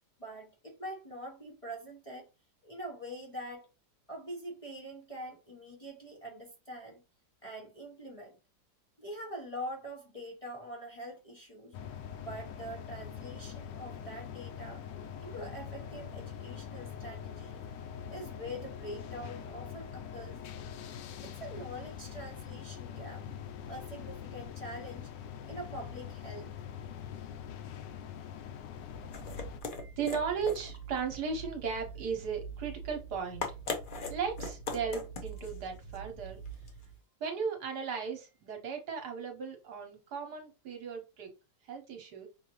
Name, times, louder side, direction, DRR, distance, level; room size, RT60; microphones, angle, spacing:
voice 1, 0.2-2.3 2.6-3.7 4.1-7.0 7.4-8.4 9.0-11.7 12.2-14.8 15.2-17.6 18.1-20.4 21.2-23.3 23.7-25.1 25.4-26.5, equal, 25° left, 0.9 m, -44 dB
sound 1, 11.7-29.6, left 8 dB, 90° left, 1.3 m, -43 dB
sound 2, 28.8-37.0, left 1 dB, 45° left, 0.6 m, -41 dB
voice 2, 29.8-33.4 34.1-36.4 37.2-41.3 41.7-42.3, right 6 dB, 70° right, 1.5 m, -36 dB
6.1 x 2.6 x 3.0 m
omnidirectional pair, 1.9 m